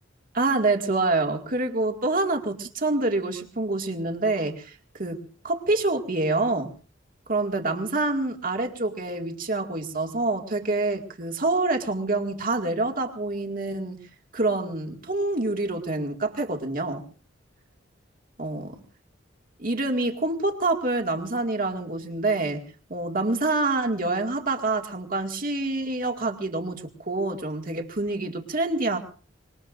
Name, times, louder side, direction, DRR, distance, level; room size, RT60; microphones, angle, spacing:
voice 1, 0.3-6.7 7.3-14.0 14.3-17.0 18.4-18.7 19.6-22.6 22.9-29.0, right 2 dB, 45° right, 3 dB, 2.1 m, -26 dB
25.5 x 21.5 x 2.6 m, 0.40 s
head